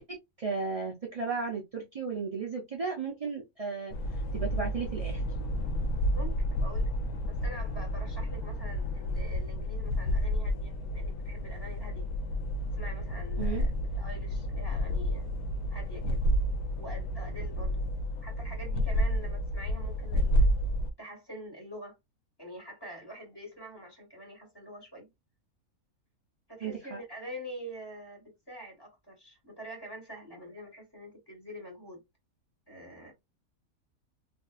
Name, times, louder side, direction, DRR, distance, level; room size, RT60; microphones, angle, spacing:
voice 1, 0.1-3.9 4.3-5.2 13.4-13.6 26.6-27.0, right 5 dB, 60° right, 0.3 m, -34 dB
sound 1, 3.9-20.9, equal, 85° left, 1.1 m, -30 dB
voice 2, 6.6-6.9 7.3-12.1 12.7-15.3 15.7-16.2 16.7-17.9 18.2-20.5 21.0-22.0 22.4-25.1 26.5-32.0 32.7-33.1, equal, 15° left, 1.4 m, -45 dB
2.7 x 2.5 x 2.3 m
omnidirectional pair, 1.5 m